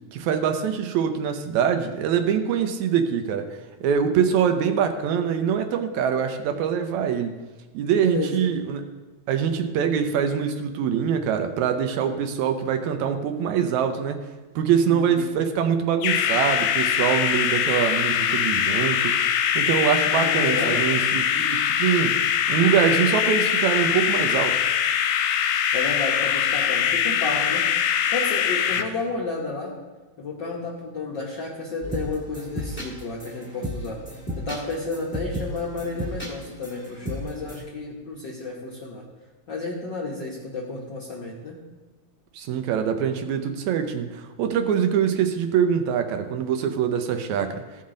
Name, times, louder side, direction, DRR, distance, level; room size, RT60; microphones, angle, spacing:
voice 1, 0.1-7.4 7.7-8.8 9.3-14.2 14.6-19.2 19.6-24.6 42.3-47.6, right 8 dB, 80° right, 6 dB, 2.0 m, -24 dB
voice 2, 8.0-8.4 14.9-15.3 20.1-20.9 25.7-29.7 30.2-39.0 39.5-41.6, left 3 dB, 60° left, -4 dB, 1.2 m, -32 dB
sound 1, 16.0-28.8, left 9 dB, 85° left, 2.0 m, -23 dB
sound 2, 31.8-37.6, equal, 5° left, 1.3 m, -34 dB
15.0 x 5.6 x 3.8 m, 1.3 s
omnidirectional pair, 3.4 m